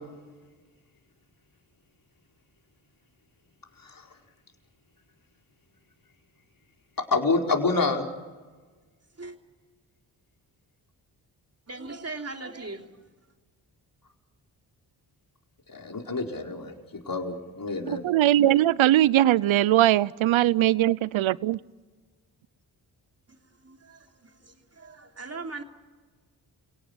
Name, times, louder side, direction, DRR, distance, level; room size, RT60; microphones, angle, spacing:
voice 1, 7.0-8.1 15.7-16.7 17.1-18.1, left 3 dB, 40° left, 2 dB, 4.8 m, -27 dB
voice 2, 11.7-12.9 23.6-24.0 24.4-25.6, right 3 dB, 30° right, 4 dB, 3.2 m, -39 dB
voice 3, 17.9-21.6, right 13 dB, 70° right, 22 dB, 0.8 m, -21 dB
29.5 x 18.0 x 8.6 m, 1.4 s
supercardioid pair, 40°, 49 cm